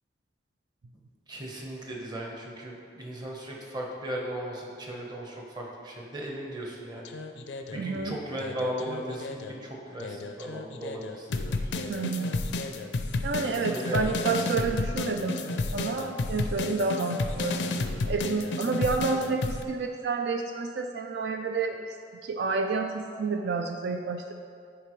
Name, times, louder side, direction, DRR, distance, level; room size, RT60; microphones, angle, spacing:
voice 1, 1.3-7.1 7.7-11.7 13.7-14.2, right 1 dB, 25° right, -2 dB, 1.0 m, -37 dB
sound 1, 7.0-9.5 10.0-19.6, left 2 dB, 85° left, 0.5 m, -32 dB
voice 2, 7.7-8.2 11.9-12.4 13.2-17.6 18.1-21.9 22.2-24.3, right 4 dB, 75° right, 5 dB, 0.4 m, -29 dB
10.0 x 4.9 x 3.1 m, 2.3 s
head